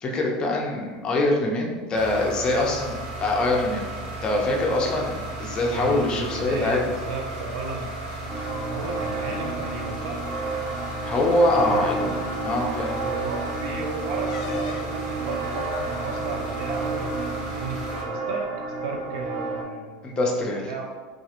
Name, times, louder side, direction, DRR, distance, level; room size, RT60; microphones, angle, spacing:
voice 1, 0.0-3.9 4.2-6.9 11.0-12.2 12.4-13.0 20.0-20.6, left 2 dB, 25° left, -1 dB, 0.5 m, -24 dB
sound 1, 1.9-18.0, right 2 dB, 55° right, 0.9 m, -35 dB
voice 2, 5.7-10.2 11.5-11.8 13.0-18.5 18.8-20.9, right 3 dB, 75° right, 0 dB, 0.6 m, -34 dB
sound 2, 8.3-8.9 9.2-9.4 9.8-10.0 11.0-11.1 11.7-12.0 14.2-15.0, left 5 dB, 90° left, 0.3 m, -40 dB
sound 3, 8.3-19.6, right 3 dB, 30° right, 0.5 m, -31 dB
3.0 x 2.3 x 2.9 m, 1.4 s
supercardioid pair, 155°, 4 cm